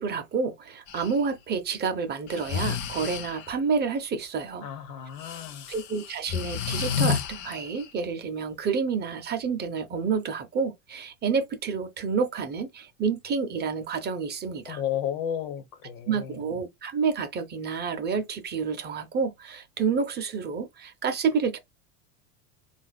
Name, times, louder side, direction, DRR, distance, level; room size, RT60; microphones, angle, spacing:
voice 1, 0.0-4.7 5.7-14.8 16.1-21.6, right 5 dB, 25° right, 0.5 m, -29 dB
Breathing, 0.9-1.1 2.3-3.5 5.2-7.9, left 8 dB, 50° left, 0.7 m, -31 dB
voice 2, 4.6-5.7 14.7-16.4, left 9 dB, 80° left, 1.2 m, -33 dB
3.8 x 2.4 x 3.9 m
supercardioid pair, 140°, 40 cm